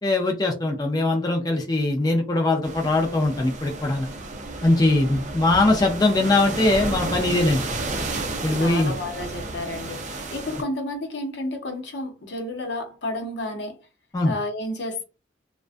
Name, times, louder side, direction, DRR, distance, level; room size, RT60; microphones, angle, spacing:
voice 1, 0.0-4.1 4.6-7.7 8.4-8.9 14.1-14.3, left 2 dB, 20° left, 0.4 m, -21 dB
sound 1, 2.6-10.6, right 2 dB, 40° right, 0.5 m, -32 dB
voice 2, 8.5-13.8 14.2-15.0, left 1 dB, 85° left, 0.7 m, -31 dB
2.4 x 2.1 x 2.4 m
head